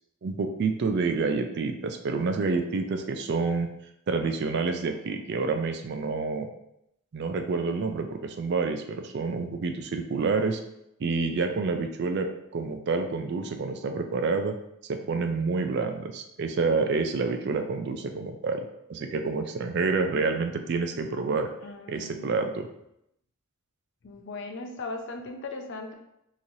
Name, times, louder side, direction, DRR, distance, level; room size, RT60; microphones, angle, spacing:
voice 1, 0.2-3.7 4.1-6.5 7.1-10.6 11.0-14.6 14.9-18.6 18.9-21.5 21.9-22.7, right 4 dB, 50° right, 6 dB, 0.3 m, -28 dB
voice 2, 21.6-22.4 24.0-25.9, left 3 dB, 55° left, 4 dB, 0.5 m, -38 dB
3.9 x 3.0 x 2.7 m, 0.80 s
head